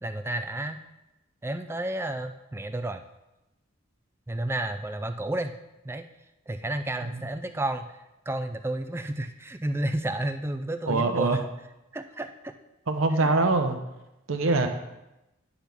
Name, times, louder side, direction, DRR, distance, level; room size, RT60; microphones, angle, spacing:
voice 1, 0.0-0.8 1.4-3.0 4.3-5.5 5.8-6.1 6.5-11.5 11.9-12.5 13.1-13.3, right 1 dB, 10° right, 8 dB, 0.3 m, -31 dB
voice 2, 10.9-11.4 12.9-13.8 14.3-14.7, right 3 dB, 80° right, 6 dB, 0.8 m, -23 dB
9.9 x 5.9 x 3.5 m, 0.96 s
head